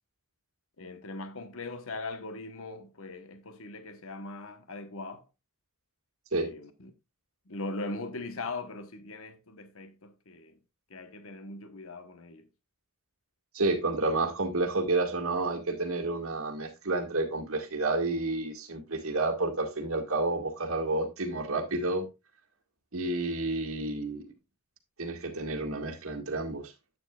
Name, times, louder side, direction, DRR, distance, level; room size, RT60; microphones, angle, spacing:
voice 1, 0.8-5.2 6.4-6.9 7.5-10.5 10.9-12.4, left 2 dB, 70° left, 1.1 m, -40 dB
voice 2, 13.5-22.1 22.9-24.3 25.0-26.7, right 2 dB, 75° right, 2.0 m, -30 dB
11.0 x 8.7 x 2.4 m
head